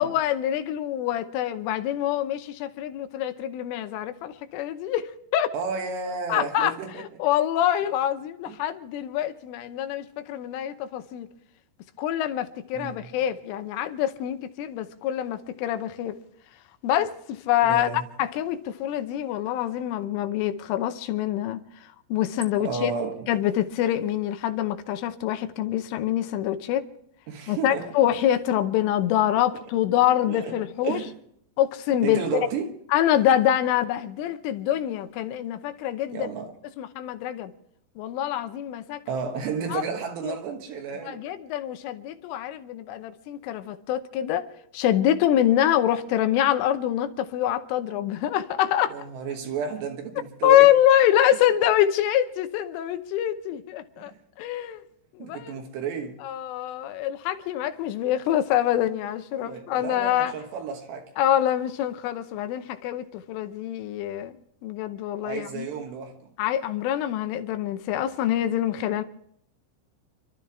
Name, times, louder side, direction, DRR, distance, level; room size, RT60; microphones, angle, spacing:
voice 1, 0.0-5.5 6.3-11.3 12.0-16.2 16.8-17.9 18.2-21.6 22.1-22.9 23.3-26.9 27.5-31.0 31.6-32.2 32.9-36.3 36.8-37.5 38.0-39.0 39.7-39.8 40.2-40.3 41.1-44.5 44.7-49.0 50.4-54.1 54.4-54.8 55.2-55.5 56.2-60.3 61.2-64.4 64.6-65.7 66.4-69.0, left 11 dB, 80° left, 3.3 m, -25 dB
voice 2, 5.5-7.1 8.5-8.6 12.7-13.1 17.6-18.1 22.6-23.3 27.3-27.9 29.9-30.0 30.3-30.6 30.8-31.2 32.0-32.7 36.1-36.5 39.1-41.2 48.9-50.7 54.0-54.2 55.2-56.2 59.3-61.1 65.2-66.2 68.9-69.0, right 6 dB, 70° right, 3.2 m, -32 dB
29.0 x 12.5 x 3.5 m
omnidirectional pair, 5.7 m